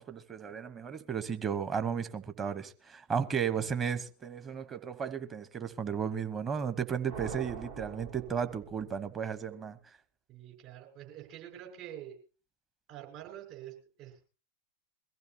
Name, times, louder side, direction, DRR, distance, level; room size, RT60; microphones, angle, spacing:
voice 1, 0.0-9.8, right 7 dB, 20° right, 1.1 m, -34 dB
sound 1, 7.1-9.3, right 6 dB, 65° right, 2.4 m, -44 dB
voice 2, 10.3-12.2 12.9-14.3, right 11 dB, 40° right, 6.3 m, -47 dB
22.5 x 15.0 x 2.9 m
figure-of-eight pair, 90°, 0 cm